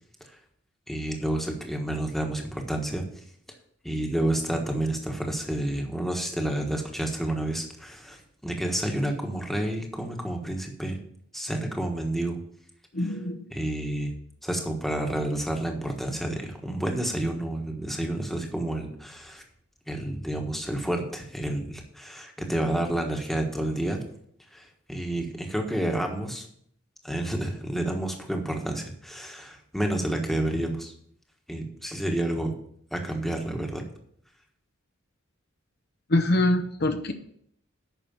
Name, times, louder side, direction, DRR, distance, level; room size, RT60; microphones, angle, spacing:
voice 1, 0.9-3.2 3.8-11.0 11.3-12.4 13.0-13.1 13.5-14.1 14.4-19.4 19.9-24.0 24.5-26.4 27.0-30.9 31.5-32.5 32.9-33.9, right 1 dB, ahead, 2 dB, 1.3 m, -30 dB
voice 2, 12.9-13.4 36.1-37.1, left 1 dB, 50° left, 6 dB, 0.7 m, -24 dB
9.1 x 6.1 x 7.1 m, 0.67 s
head